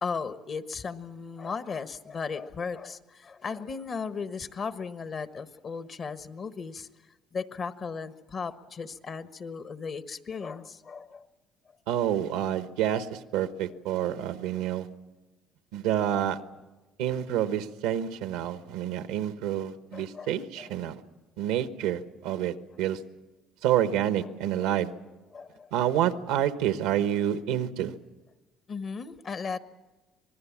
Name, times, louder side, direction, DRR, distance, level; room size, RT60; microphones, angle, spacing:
voice 1, 0.0-6.9 7.3-11.3 19.9-20.7 24.2-24.3 24.6-24.8 25.3-25.7 28.7-29.6, left 5 dB, 45° left, 11 dB, 1.2 m, -36 dB
voice 2, 11.9-14.9 15.7-16.4 17.0-21.0 21.4-23.0 23.6-24.9 25.7-27.9, right 11 dB, 85° right, 11 dB, 1.1 m, -28 dB
25.5 x 19.5 x 7.3 m, 1.1 s
supercardioid pair, 80°, 0 cm